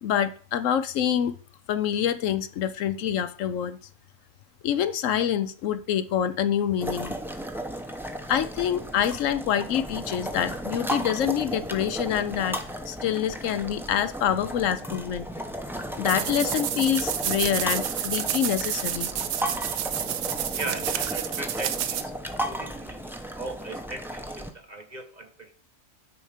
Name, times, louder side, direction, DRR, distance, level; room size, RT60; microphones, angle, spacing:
voice 1, 0.0-1.4 1.7-3.8 4.6-7.1 8.3-12.6 12.9-15.3 16.0-19.1, left 9 dB, 75° left, 13 dB, 1.0 m, -26 dB
sound 1, 6.8-24.5, right 1 dB, ahead, 0.5 m, -34 dB
sound 2, 16.1-22.0, right 10 dB, 90° right, 1.1 m, -30 dB
voice 2, 20.5-22.1 22.5-25.5, right 2 dB, 40° right, 6 dB, 0.8 m, -38 dB
10.0 x 4.3 x 5.0 m, 0.41 s
omnidirectional pair, 1.4 m